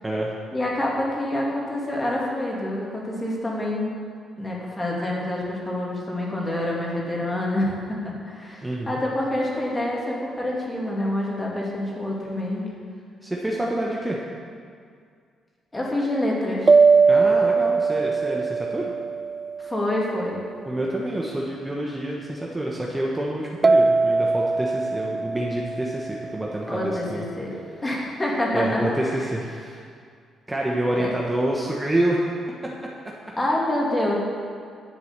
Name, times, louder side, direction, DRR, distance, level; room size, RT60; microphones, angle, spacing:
voice 1, 0.5-4.0 4.4-12.7 15.7-16.8 19.6-20.4 26.7-27.5 27.8-28.8 31.0-31.1 33.4-34.2, left 1 dB, 20° left, -3 dB, 2.5 m, -27 dB
voice 2, 8.6-9.0 13.2-14.2 17.1-18.9 20.7-27.2 28.5-29.8 30.5-32.2, right 1 dB, 15° right, -2 dB, 1.1 m, -27 dB
sound 1, 16.7-20.2 23.6-26.7, right 4 dB, 30° right, 0.3 m, -21 dB
10.5 x 4.8 x 8.1 m, 2.2 s
cardioid pair, 90°, 0 cm